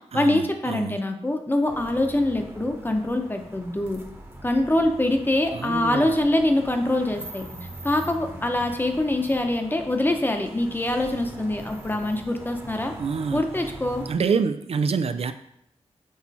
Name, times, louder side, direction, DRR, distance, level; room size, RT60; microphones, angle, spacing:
voice 1, 0.1-4.0 4.4-7.5 7.8-12.9 13.3-14.0, left 1 dB, 20° left, 4 dB, 0.9 m, -24 dB
sound 1, 1.7-14.2, right 1 dB, 20° right, 1.1 m, -42 dB
voice 2, 5.6-6.0 13.0-13.4 14.1-15.3, right 5 dB, 65° right, 10 dB, 0.4 m, -25 dB
6.3 x 4.3 x 4.2 m, 0.76 s
wide cardioid pair, 80°, 11 cm